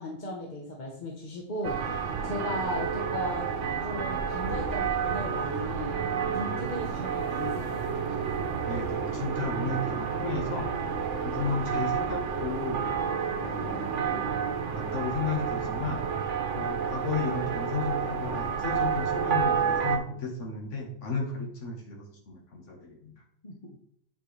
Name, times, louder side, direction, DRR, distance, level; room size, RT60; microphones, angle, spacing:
voice 1, 0.0-3.4 3.8-6.0 6.3-7.9 23.4-23.7, left 1 dB, 40° left, -1 dB, 1.2 m, -36 dB
sound 1, 1.6-20.0, right 6 dB, 80° right, 1.1 m, -30 dB
voice 2, 8.7-10.7 11.2-12.9 13.4-14.4 14.7-16.1 16.6-23.1, left 4 dB, 80° left, 0 dB, 1.7 m, -34 dB
8.8 x 4.5 x 3.2 m, 0.71 s
omnidirectional pair, 1.2 m